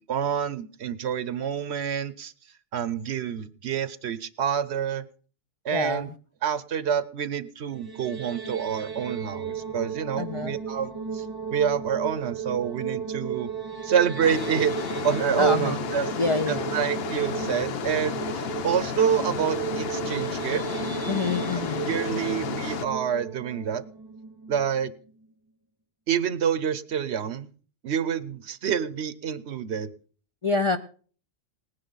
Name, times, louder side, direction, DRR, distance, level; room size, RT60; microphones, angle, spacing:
voice 1, 0.1-2.3 2.7-5.0 5.6-6.1 6.4-11.2 11.5-13.5 13.8-14.7 15.0-16.2 16.5-20.6 21.5-21.6 21.9-23.8 24.5-24.9 26.1-27.5 27.8-29.9, right 8 dB, 60° right, 15 dB, 1.0 m, -27 dB
voice 2, 5.7-6.1 10.2-10.6 15.4-15.8 16.2-16.8 21.1-21.9 30.4-30.8, left 3 dB, 40° left, 5 dB, 0.5 m, -27 dB
sound 1, 7.7-24.8, right 6 dB, 25° right, 0.6 m, -34 dB
sound 2, 14.2-22.9, left 7 dB, 55° left, 0.9 m, -33 dB
19.0 x 9.9 x 4.0 m, 0.41 s
omnidirectional pair, 1.3 m